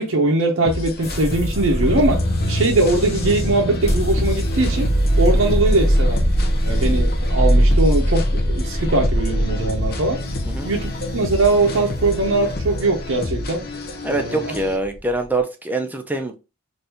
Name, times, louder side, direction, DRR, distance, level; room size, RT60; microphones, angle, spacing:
voice 1, 0.0-2.2 2.5-4.9 5.2-6.2 6.6-10.2 10.6-13.6 14.1-14.5, right 2 dB, 60° right, 0.6 m, -21 dB
sound 1, 0.6-14.8, left 2 dB, 45° left, 0.6 m, -30 dB
sound 2, 1.0-15.2, equal, 30° left, 1.0 m, -22 dB
sound 3, 1.4-12.2 12.4-12.5, equal, 85° left, 0.7 m, -31 dB
voice 2, 14.0-16.3, right 2 dB, 10° right, 0.5 m, -24 dB
3.5 x 2.6 x 2.8 m
head